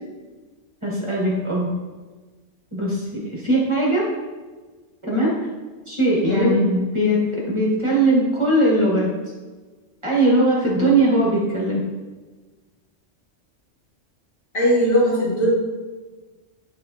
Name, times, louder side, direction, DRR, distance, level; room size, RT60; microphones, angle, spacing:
voice 1, 0.8-1.7 2.7-4.1 5.0-5.3 5.9-7.2 7.5-9.1 10.0-11.8, right 1 dB, 25° right, -5 dB, 1.3 m, -20 dB
voice 2, 6.2-6.5 14.5-15.5, equal, 50° left, -8 dB, 2.4 m, -19 dB
9.6 x 3.8 x 2.8 m, 1.3 s
omnidirectional pair, 1.2 m